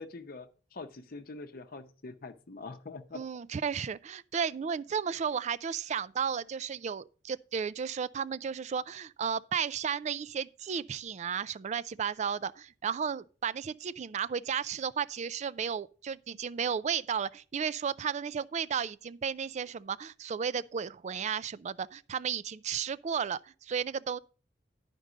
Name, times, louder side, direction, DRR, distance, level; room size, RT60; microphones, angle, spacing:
voice 1, 0.0-3.2, left 3 dB, 55° left, 0.7 m, -44 dB
voice 2, 3.1-24.2, right 7 dB, 40° right, 0.3 m, -33 dB
11.0 x 5.3 x 5.0 m
head